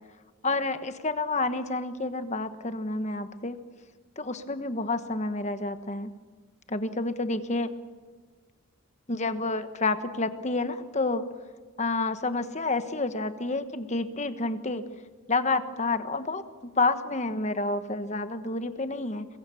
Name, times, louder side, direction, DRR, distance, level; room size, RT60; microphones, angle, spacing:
voice 1, 0.4-3.6 4.2-6.1 6.7-7.7 9.1-11.3 11.8-14.8 15.3-16.4 16.8-19.3, left 3 dB, 30° left, 10 dB, 1.3 m, -29 dB
28.0 x 22.5 x 7.1 m, 1.4 s
head